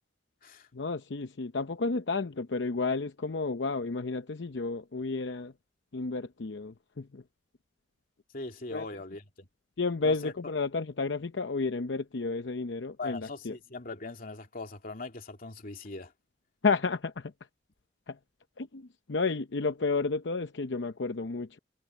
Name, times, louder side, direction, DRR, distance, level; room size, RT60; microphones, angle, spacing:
voice 1, 0.7-5.5 5.9-7.2 8.7-8.8 9.8-13.6 16.6-17.3 18.1-18.2 18.6-21.6, left 4 dB, 80° left, 0.7 m, -31 dB
voice 2, 8.3-9.5 10.0-10.3 13.0-16.1, left 3 dB, 55° left, 2.7 m, -40 dB
head